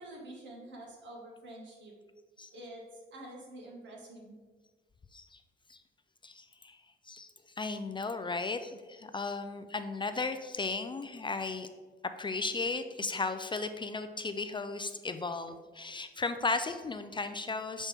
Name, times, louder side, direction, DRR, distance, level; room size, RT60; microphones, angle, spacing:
voice 1, 0.0-1.9 2.5-2.8 3.1-4.4, right 1 dB, 70° right, -1 dB, 1.7 m, -47 dB
voice 2, 6.2-6.8 7.1-11.7 12.2-17.9, left 3 dB, 25° left, 9 dB, 0.3 m, -35 dB
7.2 x 4.1 x 3.5 m, 1.4 s
cardioid pair, 90°, 20 cm